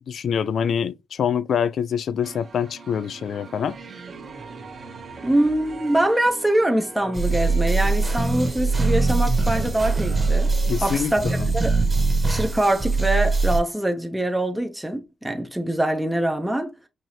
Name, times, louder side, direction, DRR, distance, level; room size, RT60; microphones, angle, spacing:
voice 1, 0.1-3.8 10.7-11.5, left 7 dB, 65° left, 0.3 m, -25 dB
sound 1, 2.2-10.8, right 4 dB, 45° right, 1.0 m, -41 dB
voice 2, 5.2-10.5 10.8-11.8 12.2-16.7, right 1 dB, 5° right, 0.7 m, -23 dB
sound 2, 7.1-13.6, right 3 dB, 20° right, 1.1 m, -22 dB
5.6 x 2.6 x 2.9 m
cardioid pair, 115°, 0 cm